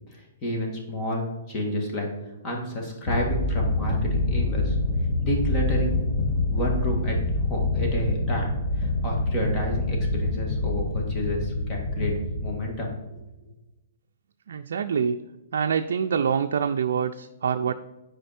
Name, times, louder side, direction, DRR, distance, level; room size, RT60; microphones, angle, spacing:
voice 1, 0.1-2.1 2.4-4.8 5.2-6.0 6.4-7.2 7.5-12.1 12.4-12.9, left 1 dB, 25° left, -1 dB, 2.1 m, -30 dB
sound 1, 3.1-13.2, left 2 dB, 60° left, 2.1 m, -26 dB
voice 2, 14.5-15.2 15.5-17.7, right 7 dB, 75° right, 5 dB, 0.4 m, -25 dB
7.8 x 4.9 x 4.4 m, 1.0 s
hypercardioid pair, 145°, 0 cm